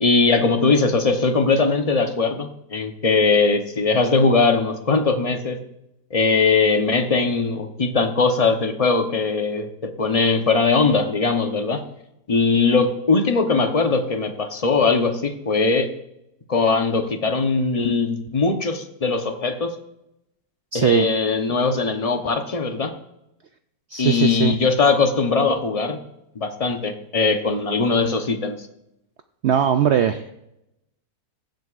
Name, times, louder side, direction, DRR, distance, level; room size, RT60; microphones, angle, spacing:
voice 1, 0.0-5.6 6.1-11.8 12.3-15.9 16.5-19.7 20.7-22.9 24.0-26.0 26.3-28.6, left 4 dB, 30° left, 6 dB, 0.7 m, -20 dB
voice 2, 20.7-21.1 23.9-24.6 29.4-30.3, right 8 dB, 85° right, 8 dB, 0.6 m, -20 dB
22.5 x 7.7 x 2.5 m, 0.85 s
omnidirectional pair, 1.7 m